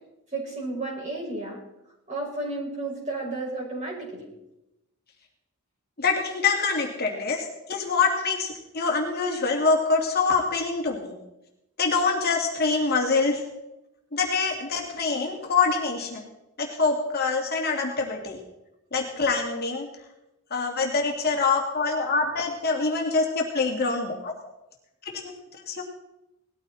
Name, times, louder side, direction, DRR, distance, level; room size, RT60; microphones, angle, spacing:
voice 1, 0.3-1.6 2.1-4.3, right 2 dB, 30° right, -3 dB, 5.8 m, -32 dB
voice 2, 6.0-11.2 11.8-13.4 14.1-16.2 16.6-18.4 18.9-19.9 20.5-24.3 25.0-25.3 25.7-25.8, left 4 dB, 45° left, 0 dB, 2.5 m, -25 dB
19.0 x 14.0 x 4.3 m, 0.91 s
head